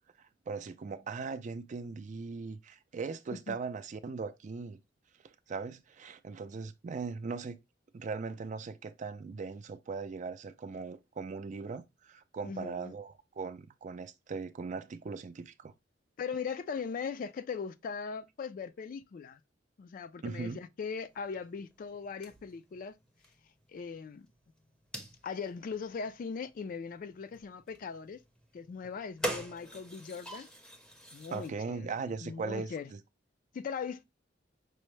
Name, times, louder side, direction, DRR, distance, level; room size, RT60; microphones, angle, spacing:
voice 1, 0.2-4.8 5.2-7.6 7.9-15.7 20.2-20.6 31.3-33.0, right 4 dB, 40° right, 0.4 m, -39 dB
voice 2, 12.4-12.9 16.2-19.4 19.8-23.0 23.7-24.3 25.2-28.2 28.5-30.5 31.1-31.9 32.2-32.9 33.5-34.0, left 5 dB, 50° left, 0.3 m, -39 dB
sound 1, 21.1-31.5, right 1 dB, 5° left, 0.6 m, -45 dB
5.4 x 2.0 x 3.1 m
head